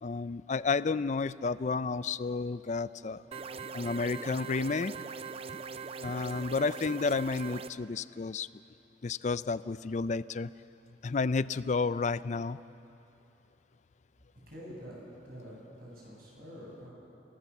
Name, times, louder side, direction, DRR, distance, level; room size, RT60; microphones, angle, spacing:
voice 1, 0.0-3.2 3.7-4.9 6.0-8.5 9.0-10.5 11.0-12.6, left 4 dB, 45° left, 16 dB, 0.4 m, -31 dB
sound 1, 3.3-7.7, right 5 dB, 35° right, 0.5 m, -41 dB
voice 2, 14.5-15.0 15.2-16.9, equal, 60° right, -3 dB, 7.8 m, -47 dB
28.0 x 18.0 x 7.2 m, 2.8 s
head